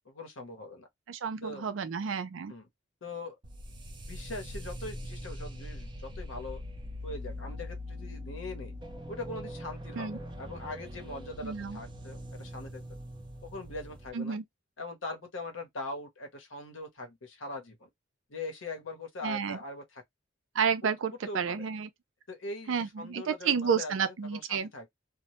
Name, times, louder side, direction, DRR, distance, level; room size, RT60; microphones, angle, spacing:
voice 1, 0.1-0.9 1.4-1.7 2.5-2.7 3.0-3.4 4.1-6.6 7.0-8.7 9.1-12.8 13.4-14.4 14.8-17.9 18.3-20.0 21.3-21.7 22.3-24.9, left 2 dB, 90° left, 0.8 m, -41 dB
voice 2, 1.1-2.5 10.0-10.2 11.4-11.8 14.1-14.4 19.2-19.6 20.5-21.9 22.7-24.7, right 6 dB, 80° right, 0.4 m, -31 dB
sound 1, 3.4-14.1, equal, 25° right, 0.4 m, -42 dB
2.1 x 2.0 x 2.8 m
head